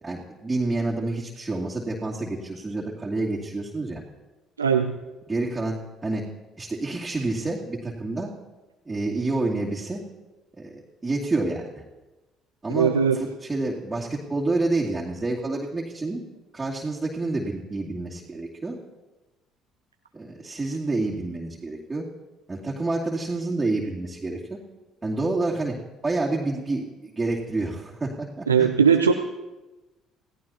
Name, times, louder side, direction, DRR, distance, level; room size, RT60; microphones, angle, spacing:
voice 1, 0.0-4.0 5.3-6.2 6.6-8.3 8.9-10.0 10.6-11.8 12.6-16.2 16.5-18.8 20.1-22.0 22.5-24.6 25.0-25.8 26.0-28.7, right 2 dB, 20° right, -5 dB, 2.6 m, -28 dB
voice 2, 4.6-5.0 12.7-13.2 28.5-29.1, right 7 dB, 85° right, 5 dB, 0.6 m, -19 dB
28.0 x 17.0 x 2.9 m, 1.1 s
figure-of-eight pair, 50°, 0 cm